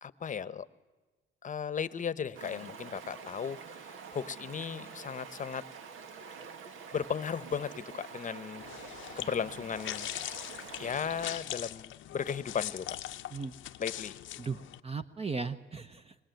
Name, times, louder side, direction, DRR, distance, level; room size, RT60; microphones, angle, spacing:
voice 1, 0.0-0.7 1.4-3.6 4.1-5.7 6.9-8.6 9.2-10.1 10.8-13.0 13.8-14.2, left 7 dB, 40° left, 16 dB, 0.9 m, -36 dB
Stream, 2.3-11.4, right 6 dB, 80° right, 1.6 m, -47 dB
sound 1, 8.6-14.8, left 13 dB, 75° left, 0.8 m, -41 dB
voice 2, 14.4-16.2, right 4 dB, 30° right, 9 dB, 0.9 m, -37 dB
22.0 x 19.0 x 9.2 m, 1.3 s
cardioid pair, 90°, 20 cm